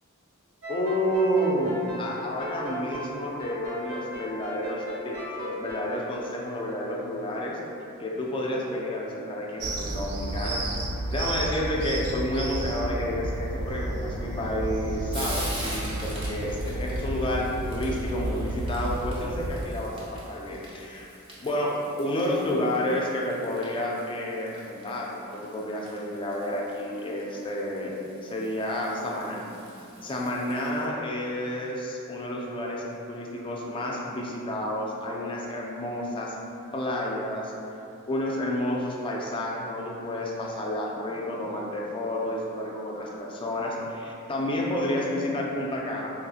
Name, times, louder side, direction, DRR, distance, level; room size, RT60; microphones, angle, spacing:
sound 1, 0.6-7.2, equal, 65° right, 1.4 m, -37 dB
voice 1, 0.7-7.6 8.0-10.7 11.1-21.1 21.4-27.9 28.2-29.4 30.0-36.4 36.7-37.5 38.1-46.2, left 1 dB, 25° left, -2 dB, 0.3 m, -30 dB
sound 2, 9.6-19.6, right 1 dB, 80° right, 0.4 m, -31 dB
Frying (food), 13.9-30.9, right 1 dB, 25° right, 0.6 m, -44 dB
3.4 x 2.7 x 2.4 m, 2.7 s
head